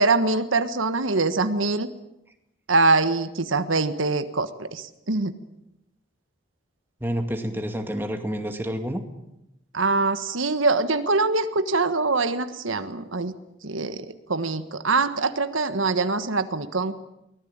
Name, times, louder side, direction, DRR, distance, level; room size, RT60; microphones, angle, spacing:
voice 1, 0.0-1.9 2.7-5.3 9.7-13.4 13.6-16.9, right 3 dB, 80° right, 10 dB, 1.4 m, -23 dB
voice 2, 7.0-9.0, equal, 10° right, 5 dB, 2.3 m, -29 dB
23.5 x 19.5 x 8.9 m, 0.86 s
head